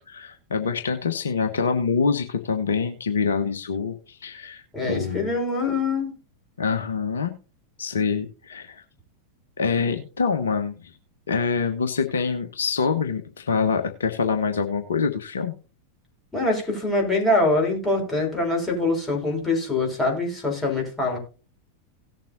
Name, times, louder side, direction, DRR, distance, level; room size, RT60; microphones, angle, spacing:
voice 1, 0.1-5.3 6.6-7.3 7.8-8.8 9.6-10.9 11.3-15.5, left 5 dB, 65° left, 7 dB, 1.2 m, -25 dB
voice 2, 4.7-6.2 16.3-21.2, left 2 dB, 10° left, -2 dB, 5.8 m, -24 dB
18.0 x 7.4 x 2.8 m, 0.34 s
figure-of-eight pair, 90°, 0 cm